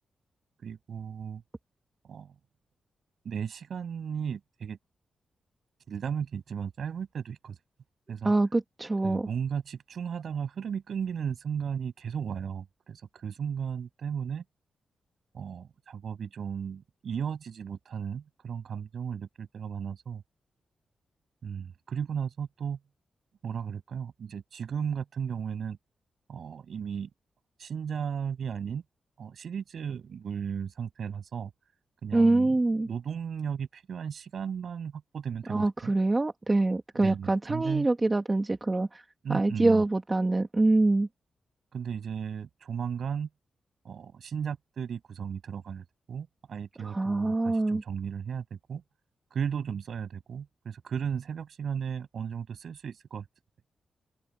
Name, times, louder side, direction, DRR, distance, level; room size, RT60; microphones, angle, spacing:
voice 1, 0.6-1.4 2.0-2.3 3.2-4.8 5.9-7.6 8.1-8.3 9.0-14.4 15.3-20.2 21.4-22.8 23.4-25.8 26.3-27.1 27.6-28.8 29.2-31.5 32.0-35.9 37.0-37.9 39.2-39.8 41.7-43.3 43.8-48.8 49.3-53.2, right 7 dB, 65° right, 7.4 m, -35 dB
voice 2, 8.2-9.3 32.1-32.9 35.5-39.0 39.3-41.1 46.8-47.8, right 2 dB, 20° right, 1.7 m, -25 dB
open air
wide cardioid pair, 120°, 0 cm